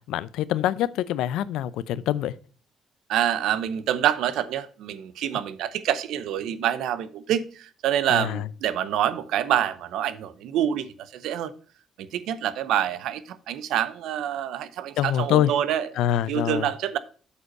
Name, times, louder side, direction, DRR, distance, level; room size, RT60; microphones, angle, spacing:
voice 1, 0.1-2.3 8.1-8.4 15.0-15.5 16.0-16.7, left 12 dB, 85° left, 0.5 m, -25 dB
voice 2, 3.1-11.5 12.0-15.9 16.3-17.0, right 10 dB, 80° right, 0.7 m, -26 dB
8.1 x 5.3 x 5.3 m
cardioid pair, 90°, 0 cm